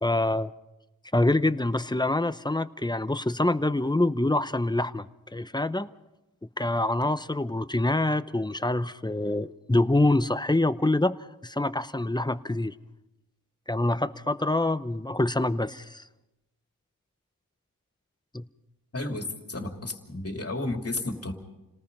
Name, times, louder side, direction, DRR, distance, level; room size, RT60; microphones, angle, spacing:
voice 1, 0.0-0.5 1.1-5.9 6.6-11.2 11.4-12.7 13.7-16.0 18.3-18.5, left 2 dB, 10° left, 13 dB, 0.7 m, -25 dB
voice 2, 18.9-21.3, left 2 dB, 40° left, 3 dB, 3.0 m, -32 dB
29.5 x 19.0 x 5.4 m, 0.98 s
wide cardioid pair, 75°, 35 cm